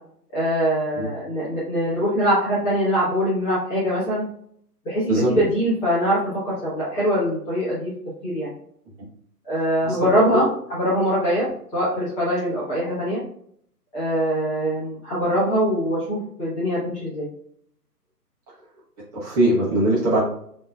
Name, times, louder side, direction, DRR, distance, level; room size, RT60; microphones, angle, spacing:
voice 1, 0.3-4.3 4.8-7.9 8.2-8.5 9.4-13.2 13.9-17.3, equal, 15° left, -8 dB, 1.4 m, -23 dB
voice 2, 19.1-20.2, right 1 dB, 25° right, -7 dB, 1.3 m, -20 dB
5.9 x 3.2 x 2.3 m, 0.66 s
figure-of-eight pair, 135°, 48 cm